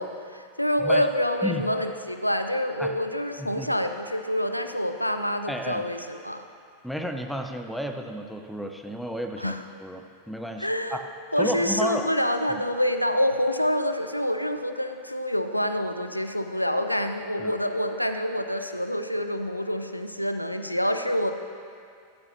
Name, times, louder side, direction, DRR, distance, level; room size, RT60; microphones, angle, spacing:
voice 1, 0.0-6.4 9.4-9.6 10.6-11.0 11.3-21.3, equal, 90° left, 8 dB, 0.6 m, -27 dB
voice 2, 5.5-5.8 6.8-9.5 9.8-11.0 11.4-12.1 12.5-12.6 17.4-17.5, equal, ahead, 5 dB, 0.8 m, -32 dB
14.5 x 13.5 x 2.8 m, 2.3 s
figure-of-eight pair, 90°, 0 cm